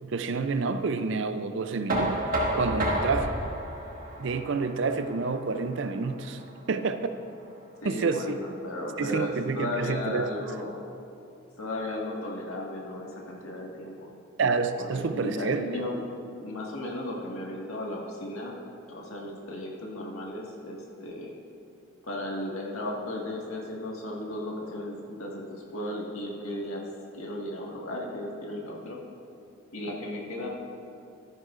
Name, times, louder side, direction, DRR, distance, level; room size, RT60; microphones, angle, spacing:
voice 1, 0.0-2.2 2.5-3.4 4.2-6.4 6.7-7.0 7.9-8.4 9.0-10.3 14.4-15.8, right 4 dB, 60° right, 0.5 m, -28 dB
Knock, 1.9-7.7, right 1 dB, 40° right, 1.6 m, -32 dB
voice 2, 7.8-10.8 11.6-14.1 14.8-16.0 16.4-18.6 18.9-21.4 22.0-26.8 27.2-29.0 29.7-30.5, left 1 dB, 85° left, 1.7 m, -35 dB
13.5 x 10.5 x 2.5 m
head